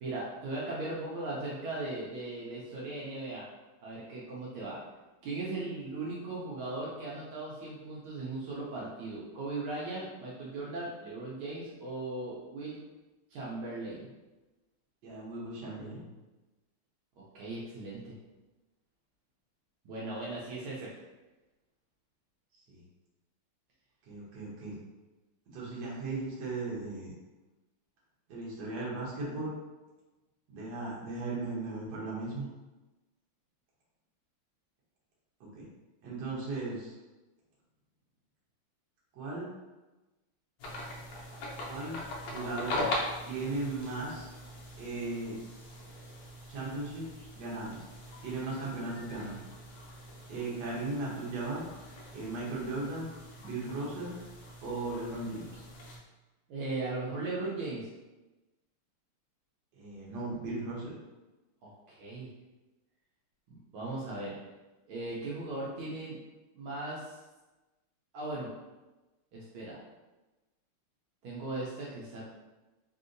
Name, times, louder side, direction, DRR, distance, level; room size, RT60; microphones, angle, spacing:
voice 1, 0.0-3.4 3.8-4.8 5.2-12.8 13.3-14.1 17.2-18.2 19.8-20.9 56.5-57.9 61.6-62.3 63.5-64.4 64.9-66.2 66.5-67.2 68.1-68.5 69.3-69.8 71.2-72.2, right 2 dB, 75° right, -6 dB, 1.4 m, -38 dB
voice 2, 15.0-16.1 22.7-22.8 24.1-24.7 25.5-27.1 28.3-29.5 30.5-32.4 35.4-35.6 36.0-36.9 39.1-39.5 41.7-42.0 42.3-42.8 43.2-44.3 44.8-45.4 46.5-47.8 48.2-49.4 50.3-51.6 52.1-53.1 53.4-54.1 54.6-55.6 59.7-60.9, right 2 dB, 60° right, -5 dB, 1.3 m, -37 dB
sound 1, 40.6-56.0, left 1 dB, 85° left, 0.8 m, -41 dB
3.4 x 2.7 x 2.5 m, 1.1 s
omnidirectional pair, 2.4 m